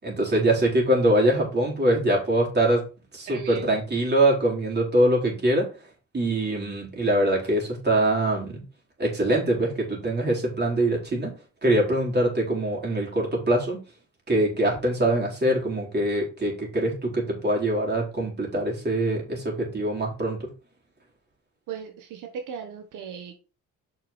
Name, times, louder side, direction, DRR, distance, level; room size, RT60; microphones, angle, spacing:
voice 1, 0.0-2.8 3.1-5.7 6.1-8.6 9.0-11.3 11.6-13.8 14.3-20.5, right 1 dB, 35° right, -2 dB, 4.3 m, -23 dB
voice 2, 3.3-3.7 21.7-23.3, right 7 dB, 90° right, 4 dB, 1.2 m, -37 dB
6.2 x 6.0 x 4.3 m, 0.33 s
cardioid pair, 90°, 30 cm